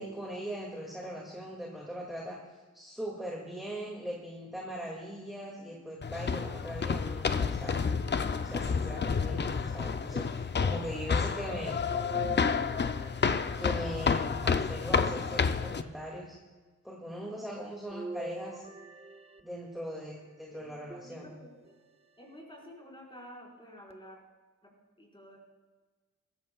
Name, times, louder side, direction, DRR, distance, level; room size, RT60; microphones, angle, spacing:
voice 1, 0.0-2.4 2.7-7.9 8.4-11.8 13.6-16.4 16.8-18.7 19.4-21.3, equal, ahead, -4 dB, 2.2 m, -40 dB
sound 1, 6.0-15.8, left 5 dB, 35° left, 0.5 m, -30 dB
sound 2, 11.9-14.2 14.9-15.9 17.9-20.0 20.9-21.8 22.4-22.5 23.9-24.0, right 2 dB, 20° right, 0.8 m, -45 dB
voice 2, 20.5-21.8 22.2-24.2 24.6-25.4, equal, 15° left, -3 dB, 4.8 m, -51 dB
23.0 x 14.5 x 2.3 m, 1.3 s
wide cardioid pair, 145°, 29 cm